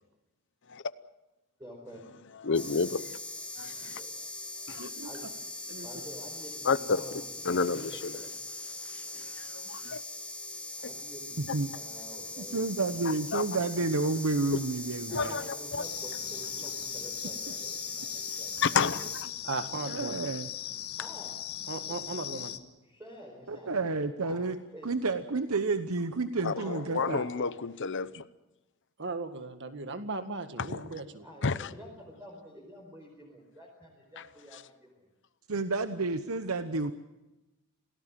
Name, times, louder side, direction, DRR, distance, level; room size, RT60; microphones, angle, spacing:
voice 1, 1.6-2.0 3.9-4.1 5.0-5.3 5.8-8.3 10.8-12.6 15.1-19.1 21.0-21.4 21.8-22.1 22.8-23.8 24.2-24.5 24.7-24.9 26.6-27.6 31.1-35.1, equal, 15° right, 4.8 m, -48 dB
voice 2, 2.4-3.2 3.6-4.0 4.7-4.9 6.6-7.0 7.4-7.9 9.3-10.0 13.3-13.4 15.1-15.8 18.6-19.0 26.4-28.2 30.7-30.9 31.4-31.7 34.2-34.3, left 5 dB, 55° left, 0.8 m, -30 dB
sound 1, 2.5-19.2, left 2 dB, 5° left, 2.8 m, -41 dB
voice 3, 4.8-5.1 5.7-5.9 19.5-20.2 21.7-22.5 29.0-31.2, right 3 dB, 55° right, 1.9 m, -37 dB
voice 4, 11.4-11.7 12.4-15.4 19.8-20.5 23.5-24.6 24.8-27.2 35.5-36.9, right 3 dB, 75° right, 1.0 m, -30 dB
sound 2, 15.8-22.6, left 11 dB, 75° left, 1.5 m, -39 dB
28.0 x 18.0 x 7.5 m
head